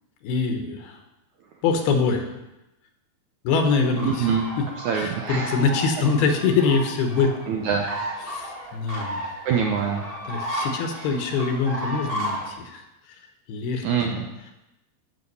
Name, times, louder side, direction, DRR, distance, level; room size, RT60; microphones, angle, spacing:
voice 1, 0.2-1.0 1.6-2.3 3.4-4.3 4.6-4.7 4.9-7.3 8.2-9.2 10.3-12.8 13.5-13.8, left 4 dB, 75° left, 4 dB, 3.0 m, -24 dB
sound 1, 3.5-12.5, equal, 45° right, 0.7 m, -34 dB
voice 2, 4.1-4.4 4.9-5.5 7.5-7.9 9.5-10.1 11.0-11.1 13.8-14.3, right 7 dB, 80° right, 2 dB, 1.7 m, -24 dB
11.0 x 8.2 x 5.5 m, 0.95 s
omnidirectional pair, 4.6 m